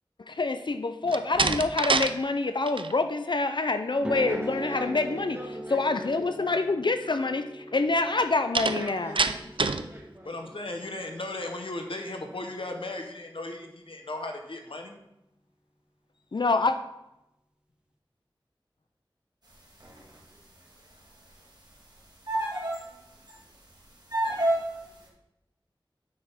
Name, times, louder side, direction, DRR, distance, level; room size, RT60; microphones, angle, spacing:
voice 1, 0.3-5.4 5.7-9.1 16.3-16.8, left 3 dB, 60° left, 8 dB, 0.4 m, -26 dB
Slam, 1.0-2.1 2.5-2.9 8.5-9.9, right 4 dB, 70° right, 0.4 m, -26 dB
sound 1, 4.0-12.0, right 1 dB, 10° right, 0.4 m, -41 dB
voice 2, 4.2-6.2 8.6-10.4, equal, 30° right, -4 dB, 2.5 m, -44 dB
voice 3, 10.2-15.0, left 2 dB, 80° left, 4 dB, 0.9 m, -36 dB
sound 2, 19.8-20.2 22.3-22.9 23.3-23.4 24.1-24.8, right 1 dB, 50° right, 1.9 m, -28 dB
7.7 x 5.6 x 3.5 m, 0.87 s
wide cardioid pair, 45°, 9 cm